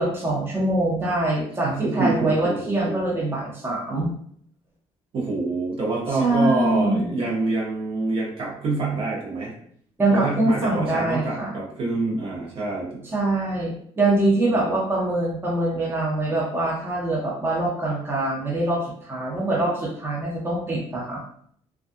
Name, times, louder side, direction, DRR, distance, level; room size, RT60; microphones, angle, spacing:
voice 1, 0.0-4.1 6.2-7.1 10.0-11.5 13.1-21.2, right 2 dB, 20° right, -4 dB, 0.8 m, -24 dB
voice 2, 1.6-3.0 5.1-9.5 10.1-13.1, right 3 dB, 50° right, -3 dB, 0.9 m, -26 dB
2.4 x 2.3 x 2.5 m, 0.63 s
cardioid pair, 115°, 11 cm